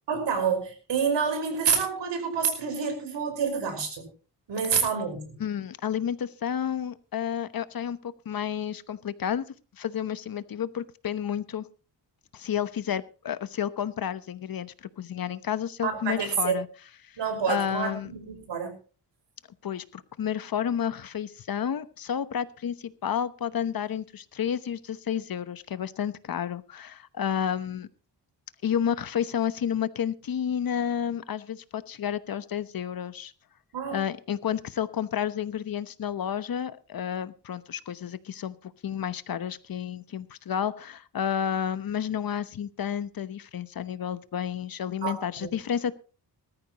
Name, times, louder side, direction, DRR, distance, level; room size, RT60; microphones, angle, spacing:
voice 1, 0.1-4.1 4.5-5.3 15.8-16.6 17.2-18.7 33.7-34.0 45.0-45.5, right 6 dB, 80° right, 6 dB, 5.3 m, -28 dB
voice 2, 5.4-9.4 9.8-11.6 12.3-16.7 17.0-17.2 17.5-18.1 19.6-27.9 28.6-33.3 33.9-45.9, left 9 dB, 55° left, 14 dB, 1.0 m, -31 dB
19.5 x 14.0 x 3.0 m, 0.35 s
wide cardioid pair, 125°, 42 cm